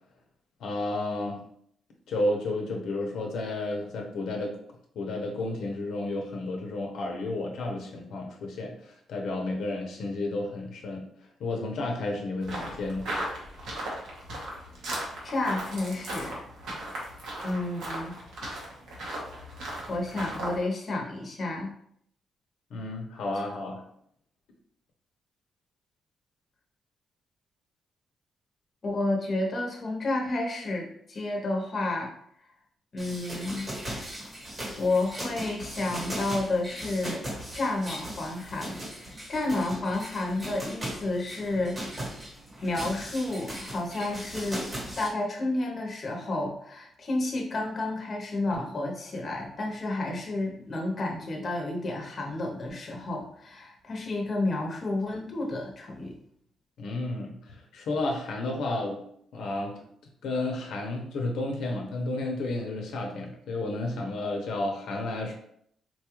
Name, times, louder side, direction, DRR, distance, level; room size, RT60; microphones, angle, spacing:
voice 1, 0.6-1.4 2.1-4.6 4.9-11.0 11.4-13.1 22.7-23.8 56.8-59.0 59.3-59.8 60.2-65.3, left 2 dB, 75° left, 1 dB, 0.7 m, -32 dB
sound 1, 12.4-20.6, right 1 dB, 90° right, 1.0 m, -37 dB
voice 2, 15.2-16.4 17.4-18.2 19.9-21.7 28.8-32.1 32.9-33.7 34.8-37.2 37.5-41.8 42.6-56.1, left 2 dB, 35° left, 0 dB, 0.7 m, -31 dB
sound 2, 33.0-45.1, equal, 25° right, 1.0 m, -38 dB
4.1 x 2.3 x 3.0 m, 0.68 s
cardioid pair, 155°, 0 cm